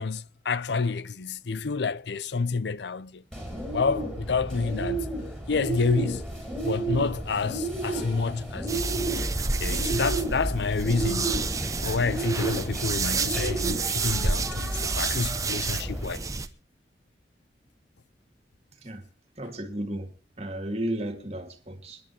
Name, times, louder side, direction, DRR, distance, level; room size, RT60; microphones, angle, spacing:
voice 1, 0.0-3.2 3.7-5.1 5.5-6.3 6.6-9.1 9.6-11.4 11.8-16.3, left 4 dB, 70° left, 0.6 m, -29 dB
Bird, 3.3-16.0, right 2 dB, 5° left, 5.4 m, -33 dB
sound 1, 8.7-16.5, right 3 dB, 20° right, 0.9 m, -29 dB
voice 2, 19.4-20.1 20.4-22.0, right 1 dB, 35° right, 2.2 m, -33 dB
26.5 x 11.0 x 2.9 m
head